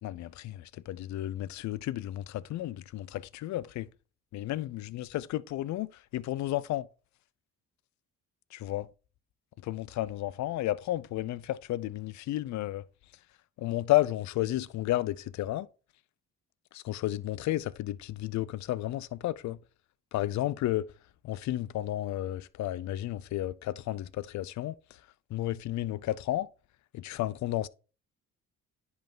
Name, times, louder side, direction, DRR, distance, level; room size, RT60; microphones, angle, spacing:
voice 1, 0.0-3.9 4.3-5.9 6.1-6.9 8.5-8.9 9.6-12.8 13.6-15.7 16.7-19.6 20.1-20.9 21.2-24.7 25.3-26.5 26.9-27.7, left 15 dB, 70° left, 0.5 m, -32 dB
10.5 x 3.5 x 3.8 m
cardioid pair, 90°, 30 cm